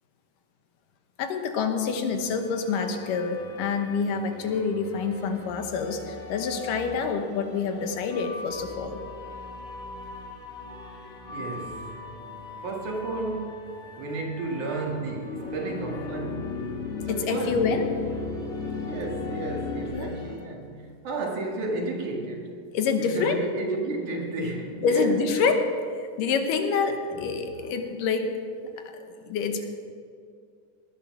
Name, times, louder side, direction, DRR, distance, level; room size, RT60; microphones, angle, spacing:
voice 1, 1.2-9.0 17.1-17.9 19.9-20.1 22.7-23.4 24.8-25.7 26.0-28.3 28.9-29.7, left 5 dB, 75° left, 6 dB, 2.7 m, -27 dB
sound 1, 2.1-20.4, left 2 dB, 15° left, 4.0 m, -42 dB
voice 2, 11.3-11.9 12.6-17.7 18.8-22.6 23.0-25.5 26.7-27.3 27.6-27.7, right 2 dB, 65° right, 0 dB, 3.3 m, -33 dB
sound 2, 15.1-19.9, left 3 dB, 55° left, 3.7 m, -34 dB
18.5 x 11.5 x 6.0 m, 2.3 s
omnidirectional pair, 3.9 m